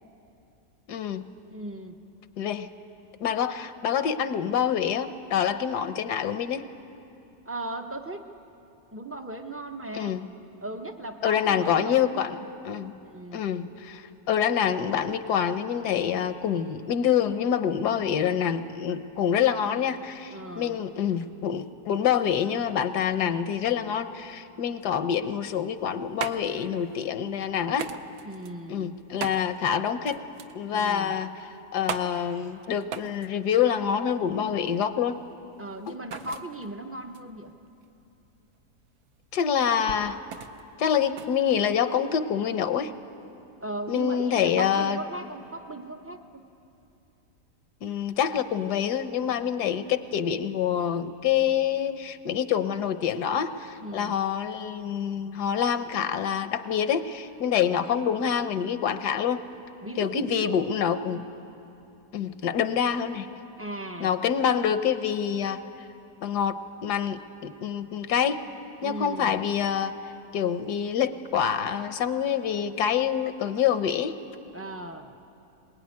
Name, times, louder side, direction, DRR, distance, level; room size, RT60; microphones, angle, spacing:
voice 1, 0.9-1.2 2.4-2.7 3.2-6.6 9.9-10.3 11.2-12.4 12.6-12.9 13.3-27.9 28.7-30.2 30.5-31.3 31.7-35.2 39.3-40.2 40.8-42.9 43.9-45.0 47.8-59.4 60.0-61.2 62.1-63.3 64.0-65.6 66.2-68.4 68.8-70.0 70.3-74.2, left 8 dB, 75° left, 11 dB, 1.4 m, -26 dB
voice 2, 1.5-2.0 7.5-8.3 8.9-10.2 10.6-12.3 13.0-13.4 17.7-17.9 19.4-19.8 20.3-20.8 28.2-28.9 30.7-31.2 35.6-37.6 43.6-46.5 53.8-54.1 59.8-61.2 63.6-64.1 68.8-69.3 74.5-75.1, right 2 dB, 15° right, 5 dB, 0.4 m, -37 dB
sound 1, 25.7-42.2, right 7 dB, 65° right, 1.3 m, -41 dB
21.5 x 20.5 x 9.6 m, 2.8 s
omnidirectional pair, 1.8 m